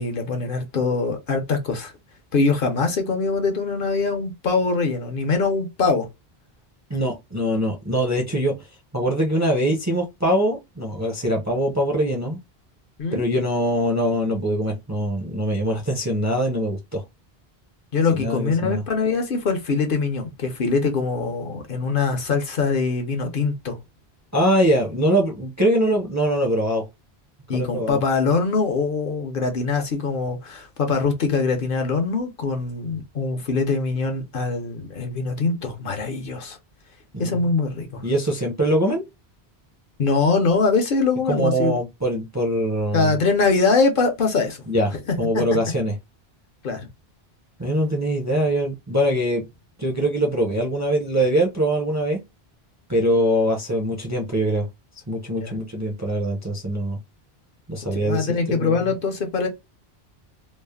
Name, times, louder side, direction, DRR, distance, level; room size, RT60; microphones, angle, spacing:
voice 1, 0.0-1.9 2.3-6.1 13.0-13.2 17.9-23.8 27.5-36.6 37.2-38.0 40.0-41.8 42.9-44.6 45.3-45.4 46.6-46.9 55.3-55.6 57.9-59.5, left 4 dB, 60° left, 0.8 m, -23 dB
voice 2, 6.9-8.6 8.9-12.4 13.1-17.0 18.2-18.8 24.3-26.9 27.5-28.0 37.1-37.5 38.0-39.0 41.3-43.1 44.7-45.9 47.6-49.4 49.8-52.2 52.9-54.7 55.1-57.0 57.7-58.9, equal, 20° right, 0.5 m, -23 dB
3.1 x 2.0 x 2.2 m
omnidirectional pair, 1.1 m